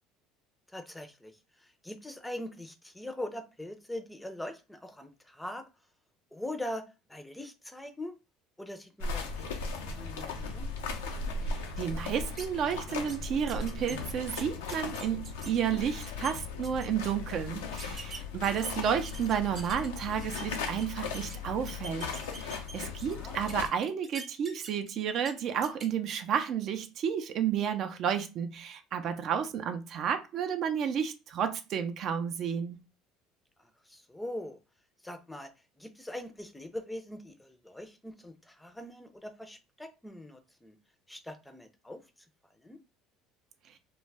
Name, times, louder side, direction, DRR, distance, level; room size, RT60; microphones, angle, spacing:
voice 1, 0.7-5.6 6.3-8.2 8.6-9.5 9.8-10.7 23.1-23.4 33.9-34.6 35.0-35.5 35.8-40.8 41.1-42.0 42.6-42.8, left 1 dB, 5° left, 0.5 m, -42 dB
sound 1, 9.0-23.7, left 4 dB, 90° left, 0.5 m, -37 dB
voice 2, 11.5-22.1 22.3-32.8, right 8 dB, 55° right, 0.4 m, -31 dB
sound 2, 12.4-12.5 12.9-13.2 13.5-15.5 15.9-16.3 16.6-17.1 17.8-19.9 20.2-21.3 21.6-23.1 23.5-24.9 25.2-25.3 25.6-25.9, right 4 dB, 35° right, 0.8 m, -45 dB
2.2 x 2.1 x 3.3 m
supercardioid pair, 90°, 0 cm